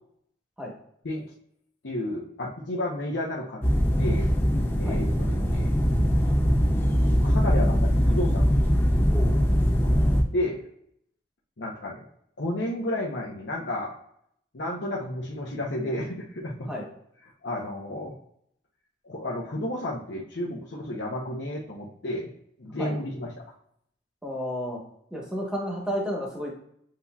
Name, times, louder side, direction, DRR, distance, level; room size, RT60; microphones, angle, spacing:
voice 1, 1.8-3.6 4.0-4.3 4.7-5.7 7.2-8.7 9.8-10.0 10.3-10.6 11.6-12.0 12.4-14.0 14.5-16.7 17.4-18.1 19.0-22.3 22.6-23.3, left 1 dB, 85° left, -3 dB, 0.8 m, -32 dB
sound 1, 3.6-10.2, equal, 10° left, 0.5 m, -22 dB
voice 2, 24.2-24.8 25.1-26.5, equal, 5° right, -2 dB, 1.0 m, -31 dB
7.5 x 2.7 x 2.3 m, 0.70 s
head